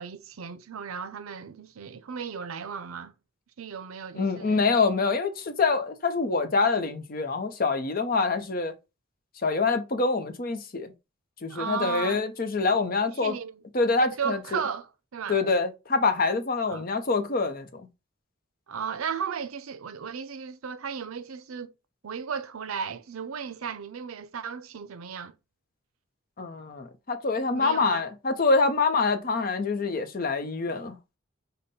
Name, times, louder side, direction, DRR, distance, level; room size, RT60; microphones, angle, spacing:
voice 1, 0.0-3.1 3.6-4.7 11.5-12.2 13.1-13.5 14.1-15.4 16.7-16.9 18.7-21.7 22.0-25.3 27.5-28.0, right 6 dB, 85° right, 0.5 m, -35 dB
voice 2, 4.1-8.7 9.4-10.9 11.4-13.4 13.7-14.6 15.3-17.9 26.4-31.0, left 4 dB, 45° left, 0.7 m, -25 dB
5.2 x 2.2 x 4.1 m
head